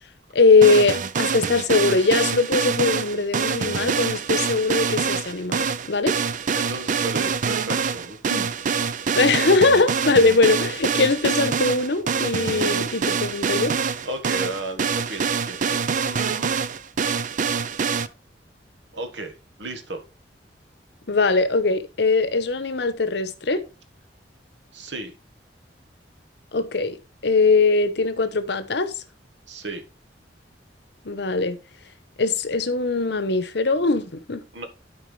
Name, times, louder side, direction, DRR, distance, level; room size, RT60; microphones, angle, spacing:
voice 1, 0.3-6.1 9.2-13.7 21.1-23.6 26.5-27.0 27.2-29.0 31.0-31.6 32.2-34.4, left 3 dB, 70° left, 0.9 m, -21 dB
sound 1, 0.6-18.1, right 6 dB, 45° right, 0.5 m, -25 dB
voice 2, 6.6-8.5 14.0-16.5 18.9-20.0 24.7-25.1 29.5-29.8 34.5-34.7, right 2 dB, 80° right, 1.5 m, -34 dB
12.5 x 4.7 x 3.2 m
head